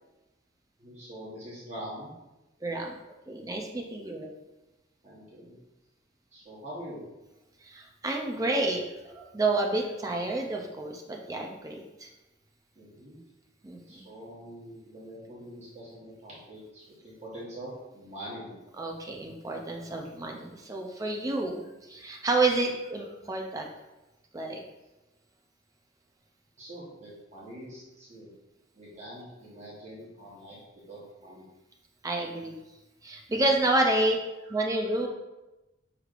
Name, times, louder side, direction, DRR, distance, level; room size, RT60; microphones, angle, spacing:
voice 1, 0.8-2.1 5.0-5.5 6.3-7.0 9.1-9.3 10.1-10.3 12.7-13.2 13.9-18.6 23.0-23.1 26.6-28.3 28.7-30.6 30.9-31.4 34.4-35.1, equal, 35° right, -8 dB, 1.1 m, -44 dB
voice 2, 2.6-2.9 3.3-4.3 7.6-12.1 13.6-14.0 18.8-23.7 24.3-24.6 32.0-32.5 33.0-34.2 34.5-35.1, right 2 dB, 15° right, 1 dB, 0.4 m, -29 dB
6.3 x 3.2 x 2.4 m, 1.0 s
head